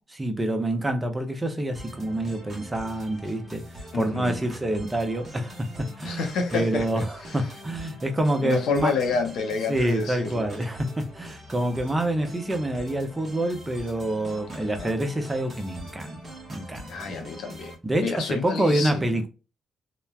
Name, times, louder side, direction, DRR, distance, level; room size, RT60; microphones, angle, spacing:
voice 1, 0.1-6.2 6.5-8.9 9.7-16.2 16.5-17.1 17.8-19.3, right 1 dB, 20° right, 0.7 m, -27 dB
sound 1, 1.7-17.7, equal, 35° right, 1.1 m, -43 dB
voice 2, 3.9-4.4 6.0-7.4 8.4-10.6 14.8-14.9 16.9-17.7 18.0-19.1, left 5 dB, 75° left, 0.7 m, -29 dB
3.0 x 2.1 x 2.3 m
cardioid pair, 90°, 0 cm